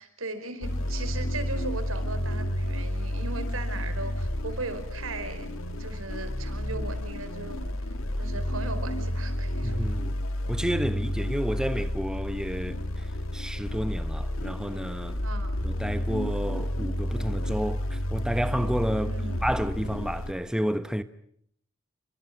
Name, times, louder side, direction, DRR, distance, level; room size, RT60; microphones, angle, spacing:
voice 1, 0.0-5.5 5.8-7.7 8.2-9.9 15.2-15.6 19.0-19.5, right 3 dB, 90° right, 4.8 m, -38 dB
sound 1, 0.6-20.3, left 1 dB, 85° left, 2.1 m, -31 dB
voice 2, 9.6-10.2 10.5-15.2 15.6-19.1 19.4-21.0, equal, 5° right, 1.0 m, -30 dB
29.5 x 25.0 x 6.0 m
head